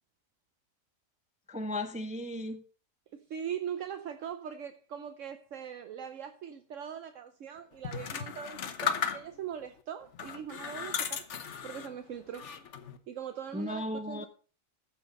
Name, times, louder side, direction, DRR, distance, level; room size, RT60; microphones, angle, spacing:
voice 1, 1.5-2.6 13.5-14.3, left 1 dB, 5° right, 0.6 m, -35 dB
voice 2, 3.1-11.2 11.6-12.5 13.1-14.3, right 8 dB, 70° right, 1.1 m, -41 dB
sound 1, 7.8-9.6 10.1-11.9 12.3-13.0, left 7 dB, 60° left, 1.2 m, -35 dB
14.5 x 5.9 x 5.2 m
omnidirectional pair, 1.4 m